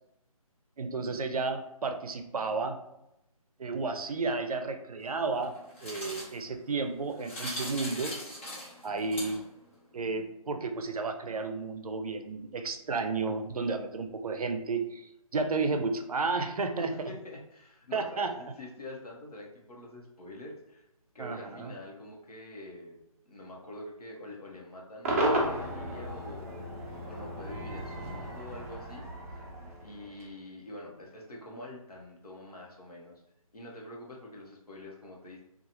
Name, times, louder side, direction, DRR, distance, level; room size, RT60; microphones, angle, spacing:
voice 1, 0.8-2.8 3.6-5.5 5.8-8.2 8.8-9.4 9.9-17.1 17.9-18.3 21.2-21.7, right 4 dB, 75° right, 6 dB, 0.5 m, -32 dB
sound 1, 5.0-9.7, left 1 dB, 20° left, 0.6 m, -42 dB
voice 2, 16.8-20.9 21.1-23.0 23.2-26.6 27.0-29.1 29.8-33.1 33.5-35.4, left 1 dB, 90° left, -2 dB, 0.9 m, -45 dB
Cheering / Crowd / Fireworks, 25.0-30.3, right 1 dB, 25° right, 0.5 m, -34 dB
2.8 x 2.4 x 2.7 m, 0.86 s
figure-of-eight pair, 155°, 19 cm